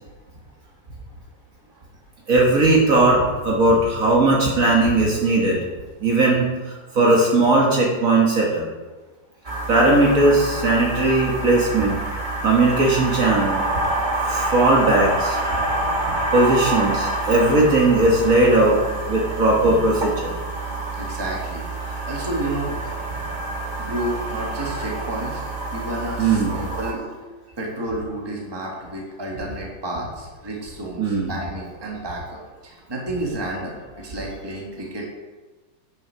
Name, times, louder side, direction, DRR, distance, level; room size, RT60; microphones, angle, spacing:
voice 1, 2.3-5.6 6.0-8.7 9.7-12.0 12.4-13.7 14.3-15.4 16.1-18.8 19.1-20.3 26.2-26.5 31.0-31.4, right 2 dB, 50° right, -2 dB, 1.7 m, -18 dB
sound 1, 9.4-26.9, right 2 dB, 30° right, 1.2 m, -27 dB
voice 2, 20.7-22.8 23.8-25.4 25.7-27.1 27.6-35.1, right 1 dB, 15° right, -1 dB, 1.6 m, -31 dB
8.8 x 6.5 x 5.7 m, 1.3 s
omnidirectional pair, 2.0 m